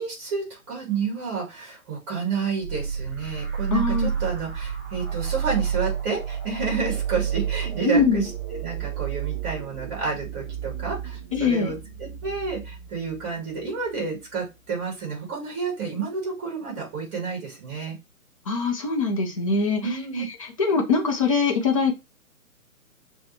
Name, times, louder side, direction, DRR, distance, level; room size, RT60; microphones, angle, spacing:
voice 1, 0.0-17.9 19.8-20.2, right 5 dB, 20° right, -3 dB, 2.1 m, -30 dB
sound 1, 2.6-14.0, right 8 dB, 45° right, 2.2 m, -31 dB
voice 2, 3.7-4.1 7.8-8.3 11.3-11.7 18.5-19.9 20.6-21.9, left 4 dB, 25° left, 2 dB, 0.6 m, -22 dB
6.6 x 2.3 x 2.8 m, 0.25 s
figure-of-eight pair, 140°, 44 cm